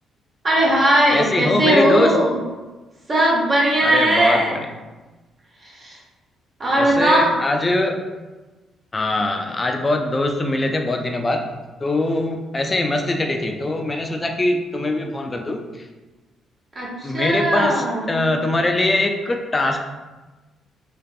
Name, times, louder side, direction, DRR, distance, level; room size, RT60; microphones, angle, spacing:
voice 1, 0.4-2.4 3.1-4.6 5.6-6.0 6.6-7.3 16.8-18.4, right 1 dB, 35° right, -4 dB, 0.8 m, -19 dB
voice 2, 1.1-2.1 3.8-4.7 6.8-8.0 8.9-11.5 11.8-15.6 17.0-19.8, left 2 dB, 25° left, 4 dB, 0.3 m, -22 dB
2.5 x 2.4 x 2.3 m, 1.2 s
cardioid pair, 90°, 0 cm